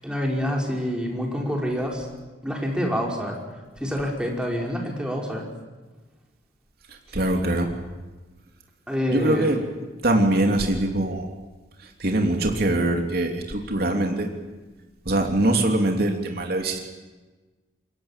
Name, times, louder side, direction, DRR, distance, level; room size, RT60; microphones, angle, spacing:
voice 1, 0.0-2.1 2.4-3.4 3.8-5.5 8.9-9.6, equal, 5° right, -1 dB, 5.4 m, -27 dB
voice 2, 7.1-7.7 9.1-9.6 10.0-11.3 12.0-14.3 15.1-16.8, right 1 dB, 55° right, 2 dB, 3.1 m, -22 dB
28.0 x 23.0 x 7.5 m, 1.3 s
head